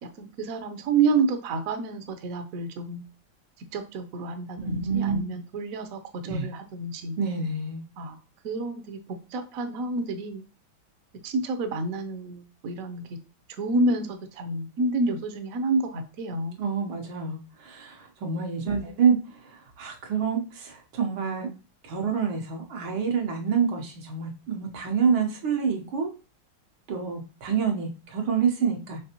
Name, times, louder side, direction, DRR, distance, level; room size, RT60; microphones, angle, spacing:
voice 1, 0.0-3.0 3.7-7.2 8.0-8.2 8.4-10.4 11.2-13.0 13.6-16.6 18.6-18.9, right 3 dB, 65° right, 7 dB, 0.8 m, -29 dB
voice 2, 4.6-5.2 6.2-6.5 7.2-7.8 16.6-19.2 19.4-21.5 21.8-26.1 26.9-29.0, right 6 dB, 90° right, 2 dB, 1.7 m, -27 dB
5.2 x 3.3 x 2.8 m, 0.33 s
omnidirectional pair, 2.1 m